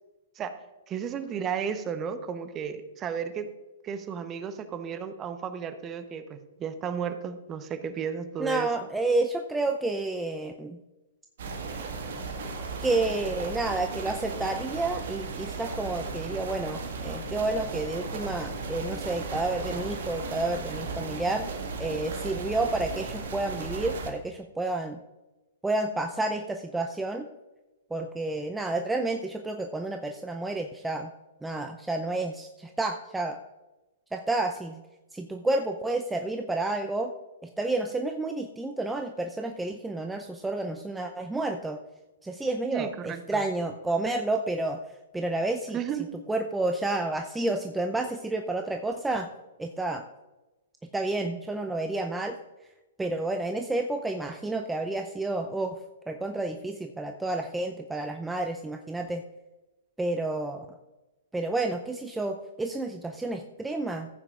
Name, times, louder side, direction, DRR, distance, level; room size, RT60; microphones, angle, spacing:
voice 1, 0.9-3.5 3.8-8.7 42.7-43.4 45.7-46.2, right 7 dB, 25° right, 10 dB, 0.9 m, -33 dB
voice 2, 8.4-10.8 12.8-21.5 21.8-25.0 25.6-27.3 27.9-31.1 31.4-33.4 34.1-34.8 35.1-37.1 37.6-41.8 42.2-44.8 45.1-45.8 46.3-49.3 49.6-50.0 50.9-52.4 53.0-55.8 56.1-59.2 60.0-60.7 61.3-64.1, right 2 dB, 5° right, 4 dB, 0.6 m, -30 dB
sound 1, 11.4-24.1, right 4 dB, 60° right, 1.7 m, -35 dB
14.5 x 8.8 x 2.5 m, 1.1 s
hypercardioid pair, 115°, 0 cm